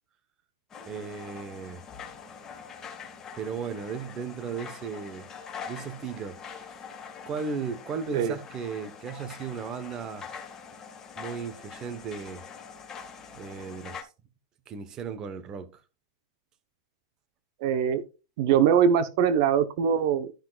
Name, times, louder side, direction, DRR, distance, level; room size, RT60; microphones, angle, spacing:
sound 1, 0.7-14.0, left 6 dB, 25° left, 1.9 m, -44 dB
voice 1, 0.9-1.8 3.3-5.3 5.7-6.7 7.3-10.3 11.2-12.4 13.3-14.1 14.7-15.8, right 6 dB, 30° right, 1.1 m, -36 dB
voice 2, 17.6-18.0 18.4-20.3, right 8 dB, 60° right, 1.0 m, -22 dB
13.0 x 5.9 x 2.4 m
supercardioid pair, 145°, 2 cm